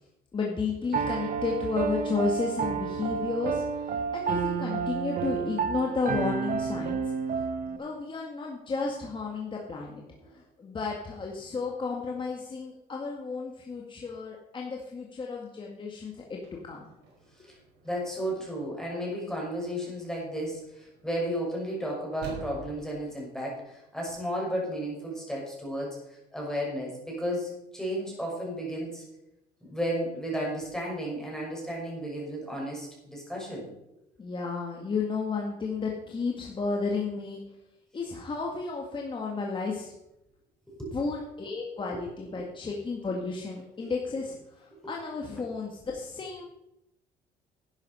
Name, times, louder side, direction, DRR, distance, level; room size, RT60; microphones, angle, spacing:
voice 1, 0.3-7.1 7.8-10.0 10.3-16.9 17.4-17.5 34.2-37.4 37.9-39.9 40.9-46.4, left 4 dB, 30° left, -1 dB, 1.9 m, -33 dB
Piano, 0.9-7.8, right 6 dB, 50° right, 1.3 m, -30 dB
sound 1, 16.4-23.3, right 4 dB, 90° right, 5.2 m, -49 dB
voice 2, 17.8-26.0 26.3-29.0 29.6-33.7 40.7-41.0 41.9-42.0 42.3-42.4 43.8-43.9 44.8-44.9, equal, 5° left, -3 dB, 6.0 m, -33 dB
11.5 x 9.7 x 5.6 m, 0.87 s
cardioid pair, 110°, 17 cm